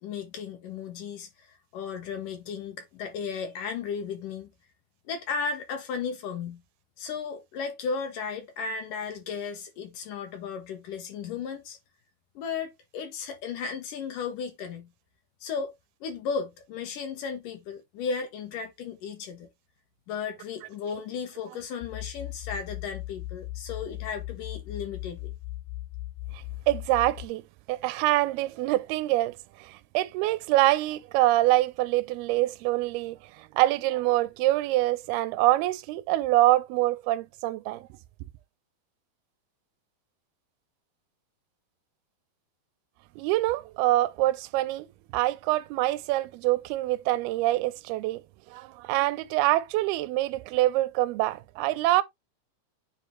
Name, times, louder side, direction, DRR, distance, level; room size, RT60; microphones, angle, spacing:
voice 1, 0.0-4.5 5.1-6.6 7.0-11.8 12.4-14.9 15.4-15.7 16.0-19.5 20.1-25.3, left 5 dB, 70° left, 2.3 m, -35 dB
sound 1, 21.8-27.3, left 16 dB, 85° left, 1.9 m, -38 dB
voice 2, 26.3-27.4 27.7-37.9 43.2-44.9 45.1-48.2 48.5-52.0, right 16 dB, 85° right, 2.4 m, -25 dB
9.4 x 3.5 x 3.0 m
omnidirectional pair, 4.4 m